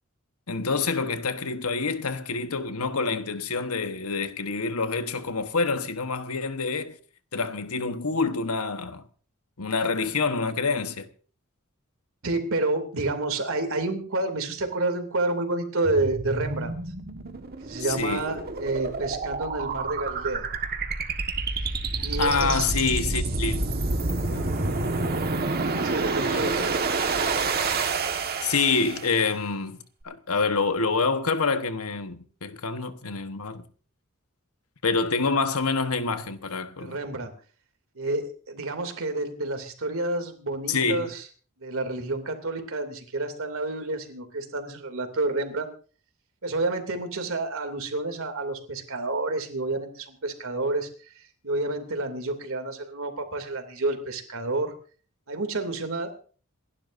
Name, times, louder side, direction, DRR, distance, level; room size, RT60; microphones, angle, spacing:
voice 1, 0.5-7.0 7.3-9.0 9.6-11.1 17.8-18.4 22.0-23.6 24.3-24.4 26.3-26.7 28.1-29.8 30.0-33.6 34.8-37.0 40.7-41.1, left 4 dB, 85° left, 1.2 m, -27 dB
voice 2, 12.2-16.8 17.6-20.4 22.0-22.7 25.8-26.6 36.8-37.3 37.9-41.2 41.6-45.7 46.4-50.9 51.4-54.7 55.3-56.1, right 2 dB, 65° right, 2.7 m, -29 dB
sound 1, 15.8-29.2, right 3 dB, 45° right, 1.5 m, -28 dB
28.0 x 11.5 x 2.6 m
head